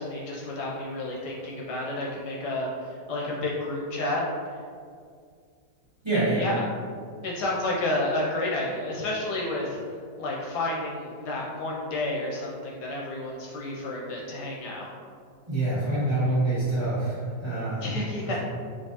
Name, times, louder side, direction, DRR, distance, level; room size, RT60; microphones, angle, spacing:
voice 1, 0.0-4.2 6.4-6.6 7.2-9.8 10.2-14.9 17.8-18.4, left 2 dB, 75° left, -3 dB, 1.1 m, -30 dB
voice 2, 6.0-6.5 15.5-17.9 18.2-18.4, right 2 dB, 20° right, -10 dB, 1.1 m, -26 dB
4.4 x 2.9 x 2.8 m, 2.1 s
omnidirectional pair, 1.9 m